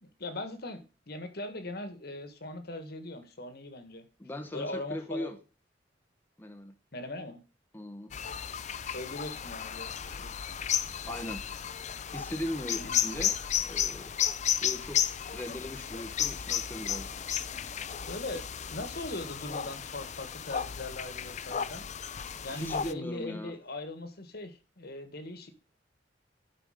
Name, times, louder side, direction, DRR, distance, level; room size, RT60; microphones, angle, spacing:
voice 1, 0.0-4.1 4.5-5.3 6.9-7.4 8.9-10.3 12.7-13.0 18.1-18.4 18.7-21.8 22.4-25.5, left 2 dB, 60° left, 9 dB, 1.5 m, -40 dB
voice 2, 4.2-5.4 6.4-6.7 7.7-8.1 11.0-11.4 12.1-13.4 13.6-14.2 14.6-15.0 15.3-17.1 22.5-23.5, left 1 dB, 10° left, 6 dB, 0.8 m, -39 dB
sound 1, 8.1-22.9, left 9 dB, 40° left, 0.5 m, -33 dB
11.5 x 4.9 x 5.0 m, 0.33 s
head